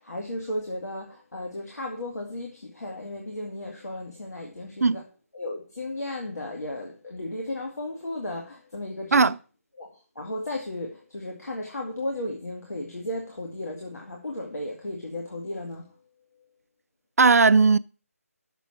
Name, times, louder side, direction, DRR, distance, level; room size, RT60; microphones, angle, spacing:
voice 1, 0.0-5.0 5.3-9.3 9.8-15.9, left 1 dB, 85° left, 2.2 m, -35 dB
voice 2, 17.2-17.8, right 4 dB, 75° right, 0.5 m, -17 dB
6.9 x 6.2 x 7.4 m
figure-of-eight pair, 170°, 8 cm